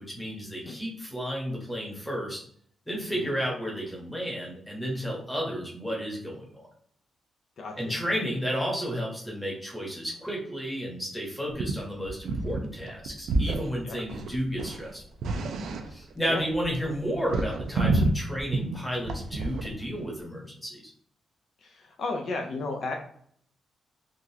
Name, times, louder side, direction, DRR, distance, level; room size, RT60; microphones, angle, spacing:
voice 1, 0.0-2.4 2.9-6.7 7.8-15.0 15.9-20.8, equal, 5° left, -2 dB, 1.0 m, -32 dB
voice 2, 7.6-7.9 13.8-14.0 16.3-16.4 21.6-23.0, left 3 dB, 60° left, 2 dB, 0.5 m, -34 dB
sound 1, 11.6-11.8 12.1-12.6 12.9-13.7 14.0-16.1 16.4-19.8, right 3 dB, 85° right, 0.4 m, -28 dB
3.7 x 2.4 x 2.7 m, 0.63 s
wide cardioid pair, 145°, 0 cm